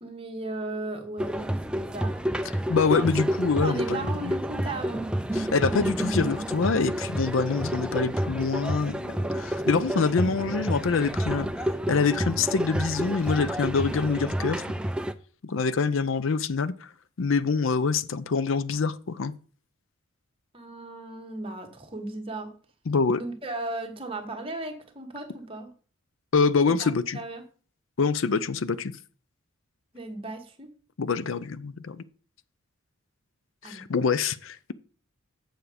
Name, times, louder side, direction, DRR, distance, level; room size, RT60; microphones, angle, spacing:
voice 1, 0.0-2.2 2.9-3.1 3.6-5.1 20.5-22.6 23.1-25.7 26.6-27.4 29.9-30.7 33.6-33.9, right 2 dB, 25° right, 1.4 m, -36 dB
sound 1, 1.2-15.1, equal, 5° right, 0.3 m, -29 dB
voice 2, 2.7-4.0 5.3-14.6 15.4-16.9 17.2-19.3 22.9-23.2 26.3-27.2 28.0-28.9 31.0-32.0 33.6-34.7, left 4 dB, 70° left, 0.5 m, -25 dB
7.7 x 7.0 x 5.0 m
head